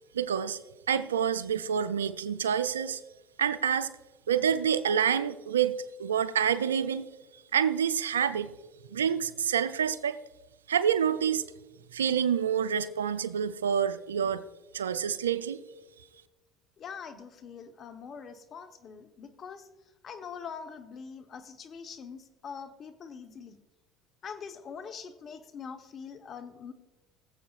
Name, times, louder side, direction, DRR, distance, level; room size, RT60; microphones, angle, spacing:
voice 1, 0.1-0.6 0.9-3.0 3.4-3.9 4.3-7.1 7.5-8.5 8.9-10.2 10.7-11.4 11.9-14.4 14.7-15.6, right 8 dB, 90° right, 14 dB, 0.4 m, -27 dB
voice 2, 16.8-23.6 24.2-26.7, left 6 dB, 45° left, 8 dB, 1.0 m, -43 dB
21.5 x 7.7 x 2.4 m, 1.2 s
hypercardioid pair, 75°, 0 cm